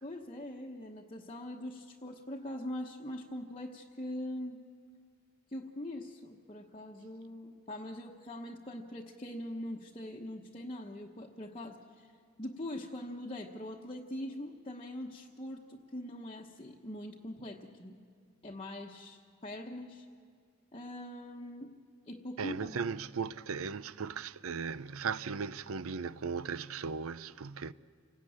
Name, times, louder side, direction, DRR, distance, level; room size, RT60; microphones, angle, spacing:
voice 1, 0.0-4.6 5.5-12.1 12.4-18.0 18.4-20.1 20.7-21.7 22.1-22.7, left 1 dB, 25° left, 1.1 m, -42 dB
voice 2, 22.4-27.7, right 5 dB, 75° right, 0.6 m, -37 dB
28.5 x 18.0 x 8.7 m
head